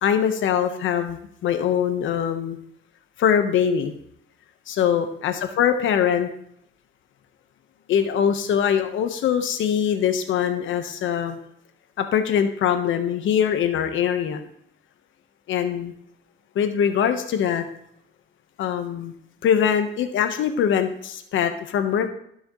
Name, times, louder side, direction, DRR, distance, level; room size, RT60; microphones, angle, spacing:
voice 1, 0.0-2.6 3.2-3.9 4.7-6.3 7.9-11.4 12.0-14.4 15.5-15.9 16.5-17.6 18.6-19.1 19.4-22.1, left 8 dB, 80° left, 7 dB, 1.2 m, -22 dB
15.5 x 6.3 x 3.2 m, 0.69 s
cardioid pair, 90°, 20 cm